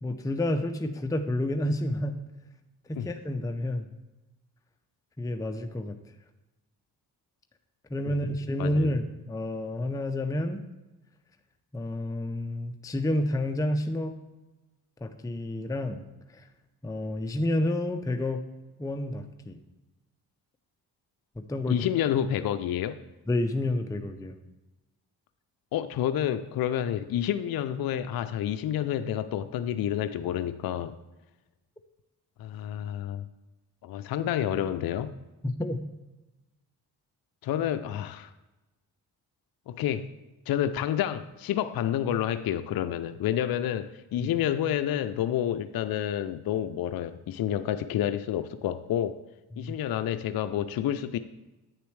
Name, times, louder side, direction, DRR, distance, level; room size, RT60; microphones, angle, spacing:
voice 1, 0.0-2.2 2.9-3.9 5.2-6.0 7.9-10.6 11.7-14.2 15.0-16.0 16.3-16.4 16.8-18.4 18.8-19.6 21.4-21.8 23.3-24.4 35.4-35.8 44.2-44.3 49.6-49.8, left 1 dB, 10° left, 6 dB, 0.6 m, -29 dB
voice 2, 8.6-8.9 21.7-23.0 25.7-31.0 32.4-33.3 33.8-35.1 37.4-38.3 39.7-40.1 40.5-49.2 49.6-51.2, left 10 dB, 60° left, 9 dB, 0.5 m, -29 dB
8.8 x 6.7 x 3.2 m, 1.0 s
supercardioid pair, 50°, 41 cm